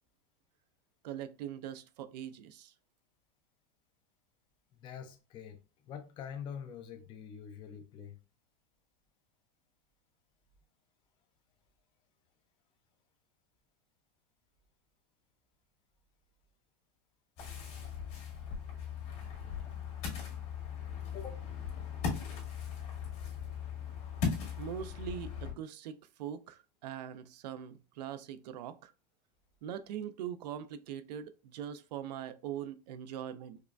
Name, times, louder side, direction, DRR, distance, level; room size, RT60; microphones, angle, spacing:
voice 1, 1.0-2.7 24.6-28.9 29.6-33.6, right 9 dB, 85° right, 0.5 m, -42 dB
voice 2, 4.7-5.6 5.9-8.2 21.1-21.4, left 7 dB, 25° left, 0.4 m, -45 dB
Ocean, 17.4-25.5, left 7 dB, 55° left, 1.7 m, -39 dB
4.7 x 2.2 x 2.3 m
supercardioid pair, 140°, 21 cm